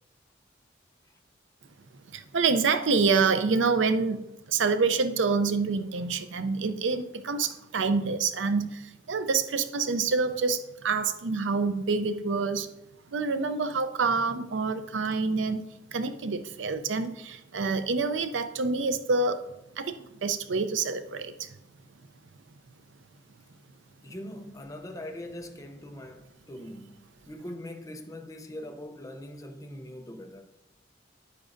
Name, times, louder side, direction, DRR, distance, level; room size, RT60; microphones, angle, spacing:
voice 1, 2.1-12.7 13.1-15.6 15.9-19.4 19.8-21.5, right 4 dB, 75° right, 0.5 m, -27 dB
voice 2, 24.0-30.5, left 1 dB, 15° left, 0.6 m, -42 dB
9.9 x 8.5 x 2.6 m
head